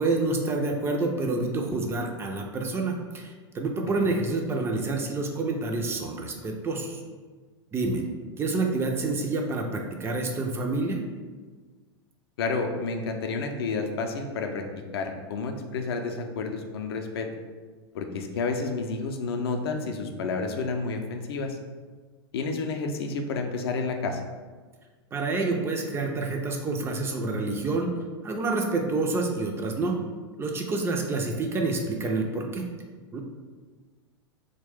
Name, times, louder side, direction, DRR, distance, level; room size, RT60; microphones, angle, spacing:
voice 1, 0.0-7.0 7.7-8.0 8.4-11.0 25.1-27.9 28.2-30.0 30.4-32.7 33.1-33.2, right 3 dB, 15° right, 2 dB, 0.3 m, -28 dB
voice 2, 12.4-14.7 14.9-17.3 17.9-21.6 22.3-24.2, left 4 dB, 65° left, 5 dB, 0.4 m, -30 dB
2.9 x 2.1 x 3.2 m, 1.4 s
figure-of-eight pair, 95°, 14 cm